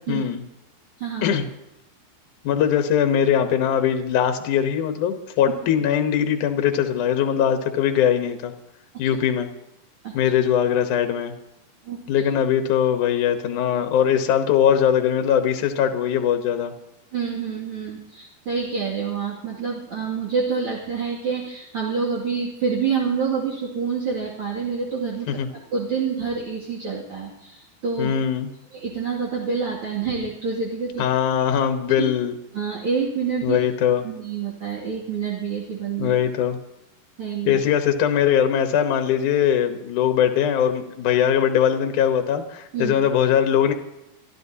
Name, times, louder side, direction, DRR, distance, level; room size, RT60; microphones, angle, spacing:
voice 1, 0.1-0.4 1.2-1.5 2.4-8.5 9.0-9.5 10.1-11.3 12.1-16.7 25.3-25.5 28.0-28.5 31.0-32.3 33.4-34.0 36.0-36.6 37.5-43.7, left 9 dB, 65° left, 6 dB, 2.3 m, -21 dB
voice 2, 1.0-1.4 10.0-10.1 11.8-12.2 17.1-28.1 28.7-31.0 31.4-31.5 32.0-32.1 32.5-33.6 34.0-36.2 37.2-37.6 42.7-43.0, right 5 dB, 40° right, -4 dB, 2.9 m, -27 dB
26.0 x 13.0 x 2.8 m, 0.87 s
omnidirectional pair, 4.3 m